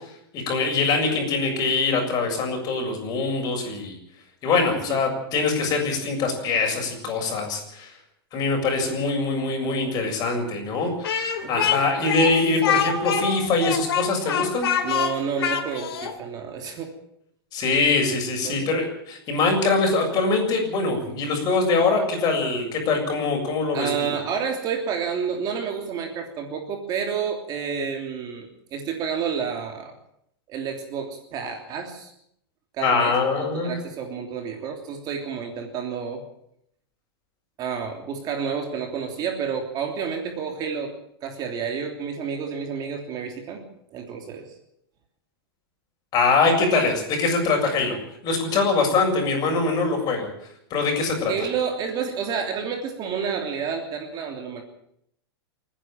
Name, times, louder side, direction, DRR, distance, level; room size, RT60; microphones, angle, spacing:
voice 1, 0.3-4.0 4.4-7.9 8.3-14.7 17.5-24.1 32.8-33.8 46.1-50.3 50.7-51.3, left 3 dB, 30° left, 2 dB, 7.3 m, -23 dB
Speech, 11.0-16.1, left 8 dB, 85° left, 3.3 m, -25 dB
voice 2, 11.4-11.7 14.8-16.9 18.4-18.6 23.7-29.9 30.5-32.1 32.7-36.2 37.6-40.9 41.2-44.5 51.3-54.6, right 6 dB, 30° right, 3 dB, 3.2 m, -30 dB
28.0 x 10.0 x 9.1 m, 0.75 s
supercardioid pair, 145°, 13 cm